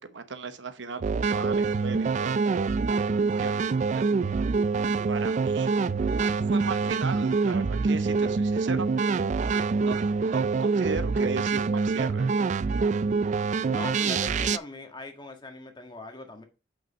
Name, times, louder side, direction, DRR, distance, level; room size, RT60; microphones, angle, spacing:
voice 1, 0.0-2.4 3.2-4.0 4.3-4.4 5.1-5.8 6.3-9.5 9.8-10.0 10.2-12.3, right 4 dB, 80° right, 0.9 m, -37 dB
sound 1, 1.0-14.6, right 4 dB, 40° right, 0.3 m, -25 dB
voice 2, 13.6-16.4, left 2 dB, 25° left, 1.5 m, -40 dB
6.1 x 5.3 x 5.5 m
head